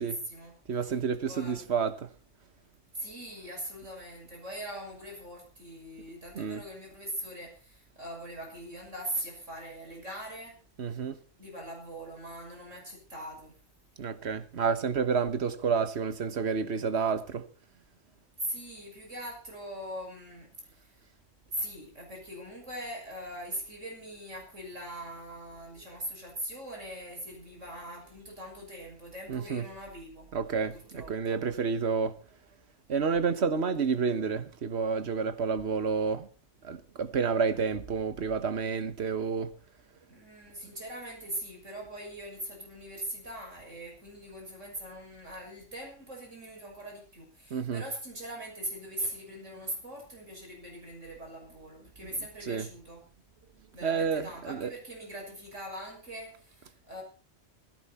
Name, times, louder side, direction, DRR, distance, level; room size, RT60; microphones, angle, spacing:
voice 1, 0.0-0.6 0.8-1.0 1.3-1.8 2.9-10.6 11.4-13.6 18.4-20.5 20.8-20.9 21.5-30.3 30.7-31.4 40.0-53.0 53.7-57.0, right 1 dB, 90° right, 7.1 m, -41 dB
voice 2, 0.7-2.1 6.3-6.6 10.8-11.2 14.0-17.4 29.3-29.6 30.3-32.1 32.9-36.3 36.6-39.5 47.5-47.8 52.4-52.7 53.8-54.7, right 5 dB, 60° right, 1.4 m, -29 dB
17.0 x 15.0 x 4.3 m
omnidirectional pair, 1.2 m